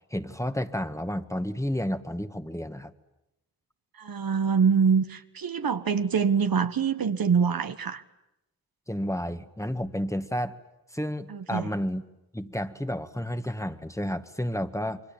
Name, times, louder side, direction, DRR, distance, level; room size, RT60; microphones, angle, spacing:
voice 1, 0.1-2.9 8.9-10.6 10.9-12.0 12.3-15.0, equal, 5° left, 9 dB, 1.8 m, -31 dB
voice 2, 4.0-8.0 11.3-11.7, right 6 dB, 60° right, 9 dB, 1.4 m, -25 dB
28.0 x 22.5 x 8.9 m, 0.90 s
supercardioid pair, 40°, 40 cm